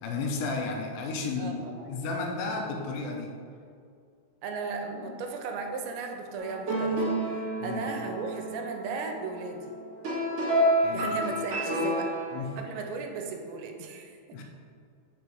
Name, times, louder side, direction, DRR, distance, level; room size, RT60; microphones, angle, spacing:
voice 1, 0.0-1.6 1.9-3.3 7.6-7.8 10.8-11.1 12.3-12.6 14.3-14.4, left 4 dB, 80° left, 1 dB, 2.9 m, -32 dB
voice 2, 1.4-1.9 4.4-7.1 7.6-9.8 10.9-12.1 12.6-14.4, right 4 dB, 90° right, 3 dB, 2.9 m, -36 dB
sound 1, 6.4-12.4, right 1 dB, 70° right, 1.4 m, -29 dB
6.9 x 4.6 x 5.4 m, 2.3 s
omnidirectional pair, 5.1 m